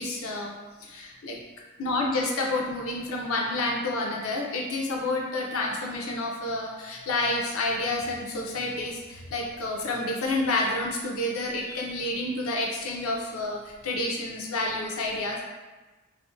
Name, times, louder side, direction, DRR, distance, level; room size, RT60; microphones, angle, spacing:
voice 1, 0.0-1.4 1.8-15.4, left 2 dB, 70° left, 0 dB, 0.5 m, -29 dB
2.4 x 2.1 x 2.5 m, 1.2 s
head